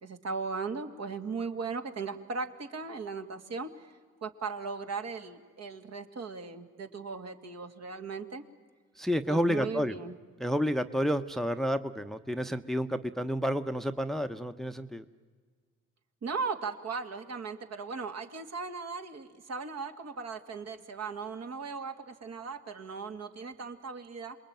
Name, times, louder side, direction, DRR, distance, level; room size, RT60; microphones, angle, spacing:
voice 1, 0.0-3.9 4.2-8.4 9.3-10.1 16.2-24.4, right 4 dB, 60° right, 6 dB, 2.3 m, -37 dB
voice 2, 9.0-9.9 10.4-15.0, equal, ahead, 10 dB, 0.8 m, -30 dB
27.5 x 21.5 x 9.1 m, 1.6 s
cardioid pair, 90°, 30 cm